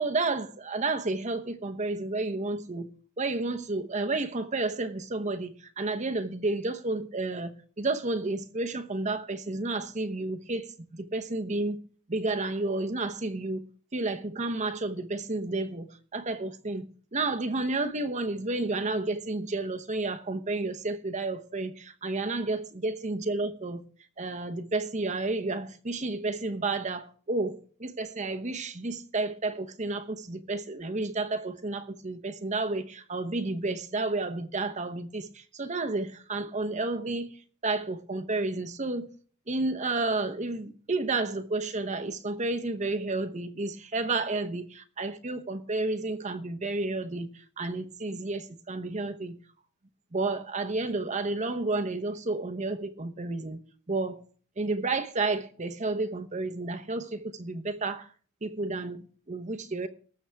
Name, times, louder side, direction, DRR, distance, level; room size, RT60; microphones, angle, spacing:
voice 1, 0.0-2.9 3.2-11.8 12.1-13.6 13.9-16.9 17.1-23.8 24.2-37.3 37.6-39.1 39.5-49.4 50.1-53.6 53.9-54.2 54.6-58.1 58.4-59.9, right 2 dB, 35° right, 0.9 m, -31 dB
19.5 x 7.1 x 3.5 m
head